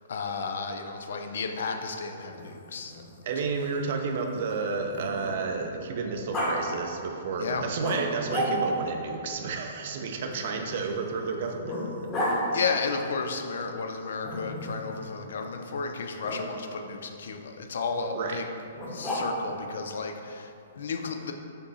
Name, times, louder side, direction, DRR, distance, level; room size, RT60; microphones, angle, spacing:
voice 1, 0.1-3.0 7.4-7.7 12.5-18.5 18.9-21.3, left 5 dB, 75° left, 5 dB, 0.4 m, -33 dB
Growling, 2.2-5.6 6.3-6.5 7.8-8.9 10.3-12.4 14.2-14.9 16.2-16.4 18.7-19.6, equal, 20° left, 1.1 m, -34 dB
voice 2, 3.2-11.8 18.1-18.4, right 4 dB, 55° right, 4 dB, 0.5 m, -31 dB
5.1 x 2.5 x 4.0 m, 2.7 s
hypercardioid pair, 140°, 0 cm